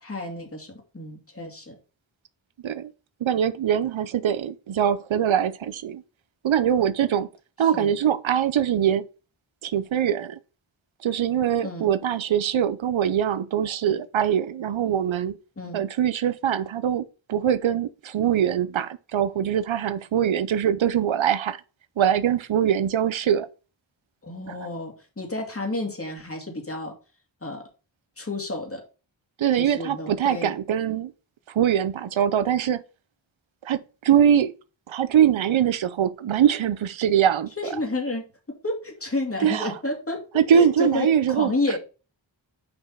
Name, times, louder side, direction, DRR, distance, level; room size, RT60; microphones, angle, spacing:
voice 1, 0.0-1.8 7.6-7.9 11.6-11.9 15.6-15.9 24.2-26.9 27.4-27.6 28.2-28.8 29.6-30.5 37.6-38.2 38.6-40.2 40.5-41.8, left 2 dB, 30° left, 2.6 m, -31 dB
voice 2, 3.2-6.0 6.4-7.3 7.6-9.1 9.6-10.4 11.0-15.4 15.7-21.6 22.0-23.5 29.4-31.1 31.5-32.8 33.6-34.5 34.9-37.5 39.4-39.7 40.3-41.8, right 9 dB, 90° right, 0.7 m, -23 dB
5.6 x 5.5 x 5.6 m
wide cardioid pair, 85°, 46 cm